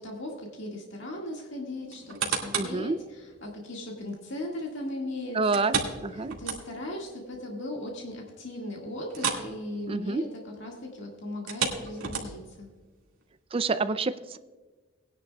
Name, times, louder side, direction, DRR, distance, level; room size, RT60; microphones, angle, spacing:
voice 1, 0.0-5.8 6.1-12.7, left 1 dB, 60° left, -1 dB, 1.9 m, -38 dB
sound 1, 1.9-2.8 3.3-3.4 5.5-7.0 7.3-7.4 7.9-8.0 9.1-9.5 9.8-10.0 11.3-12.6 13.2-13.3, right 6 dB, 80° right, 2.1 m, -31 dB
voice 2, 2.5-3.0 5.3-5.7 6.0-6.3 9.9-10.2 13.5-14.4, right 3 dB, 25° right, 12 dB, 0.4 m, -27 dB
19.0 x 10.5 x 2.3 m, 1.3 s
head